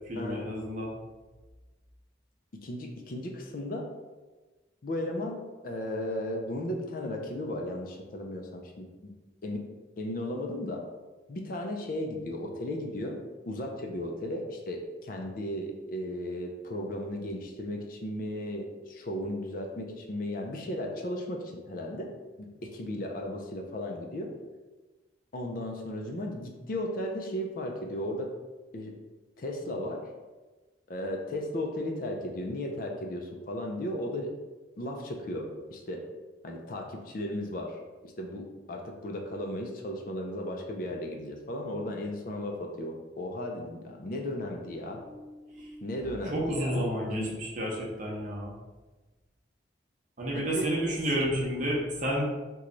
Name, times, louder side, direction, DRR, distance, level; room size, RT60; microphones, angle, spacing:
voice 1, 0.1-1.0 45.1-45.2 45.5-45.9 46.3-48.5 50.2-52.3, equal, 45° right, -3 dB, 0.7 m, -31 dB
voice 2, 2.6-3.9 4.8-5.4 5.6-9.1 9.4-9.6 10.0-10.8 11.3-13.2 13.5-22.1 22.4-24.3 25.3-28.3 28.7-28.9 29.4-30.0 30.9-34.3 34.8-36.0 36.4-45.0 45.8-47.3 50.3-50.7, left 1 dB, 50° left, 2 dB, 0.4 m, -35 dB
3.0 x 2.2 x 3.8 m, 1.2 s
head